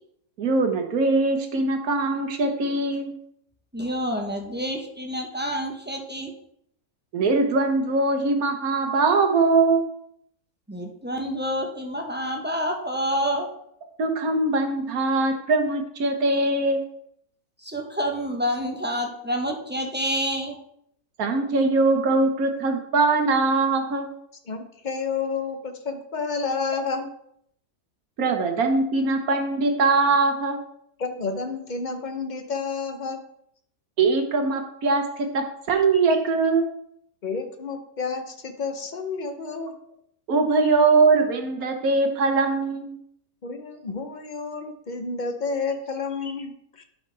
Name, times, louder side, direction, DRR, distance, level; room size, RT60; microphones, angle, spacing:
voice 1, 0.4-3.1 7.1-9.8 14.0-16.8 21.2-24.1 28.2-30.6 34.0-36.7 40.3-43.0, right 3 dB, 70° right, 5 dB, 1.5 m, -22 dB
voice 2, 3.7-6.3 10.7-13.5 17.6-20.6, equal, 10° right, 2 dB, 0.6 m, -28 dB
voice 3, 24.5-27.1 31.0-33.2 35.7-35.8 37.2-39.7 40.6-40.7 43.4-46.8, left 4 dB, 40° left, 6 dB, 0.7 m, -30 dB
11.0 x 5.6 x 3.3 m, 0.72 s
omnidirectional pair, 1.6 m